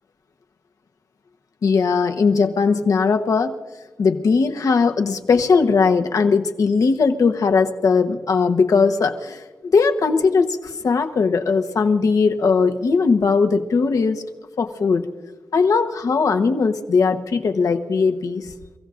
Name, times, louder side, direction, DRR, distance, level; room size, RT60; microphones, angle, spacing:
voice 1, 1.6-3.5 4.0-14.2 14.6-15.1 15.5-18.5, left 4 dB, 75° left, 5 dB, 1.1 m, -19 dB
29.0 x 16.0 x 2.6 m, 1.3 s
wide cardioid pair, 150°, 6 cm